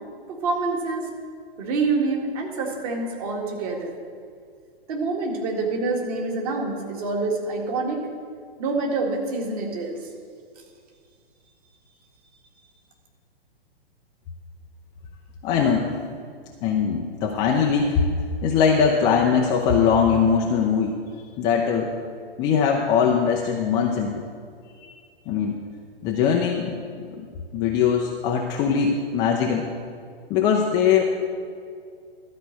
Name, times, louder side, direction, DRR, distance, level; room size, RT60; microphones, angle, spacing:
voice 1, 0.3-1.1 1.6-3.9 4.9-8.1 8.6-10.0, right 3 dB, 40° right, 0 dB, 2.0 m, -26 dB
voice 2, 15.4-15.9 16.6-18.1 18.4-21.9 22.4-24.2 25.3-25.6 26.0-27.3 27.5-29.7 30.3-31.0, left 6 dB, 15° left, 0 dB, 0.4 m, -21 dB
12.5 x 5.0 x 7.7 m, 2.2 s
figure-of-eight pair, 115°, 30 cm